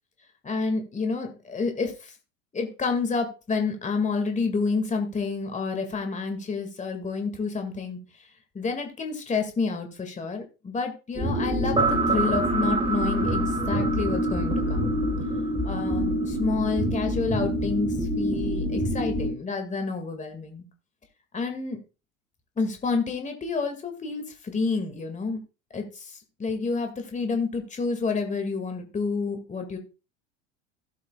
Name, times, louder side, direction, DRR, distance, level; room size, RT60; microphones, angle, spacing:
voice 1, 0.4-2.1 2.5-8.0 8.5-14.9 15.6-20.6 21.3-21.8 22.6-25.4 25.7-29.8, left 4 dB, 20° left, 5 dB, 2.0 m, -29 dB
sound 1, 11.1-19.3, right 1 dB, 15° right, 4.0 m, -25 dB
16.0 x 7.6 x 2.3 m, 0.31 s
hypercardioid pair, 80°, 39 cm